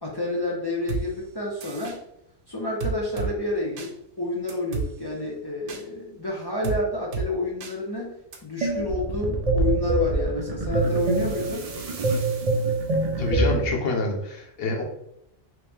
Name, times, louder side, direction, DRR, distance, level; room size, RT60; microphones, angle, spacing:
voice 1, 0.0-2.0 2.5-8.1 8.4-11.7, left 2 dB, 40° left, -3 dB, 0.3 m, -29 dB
sound 1, 0.9-1.0 1.6-2.0 2.8-3.3 3.8-3.9 4.5-4.9 5.7-5.8 6.6-6.8 7.1-7.3 7.6-7.7 8.3-8.4, right 5 dB, 75° right, 1.0 m, -29 dB
sound 2, 8.6-13.8, right 2 dB, 55° right, 0.4 m, -25 dB
voice 2, 13.2-14.8, left 2 dB, 60° left, 0 dB, 1.0 m, -26 dB
3.0 x 2.9 x 3.4 m, 0.78 s
omnidirectional pair, 1.2 m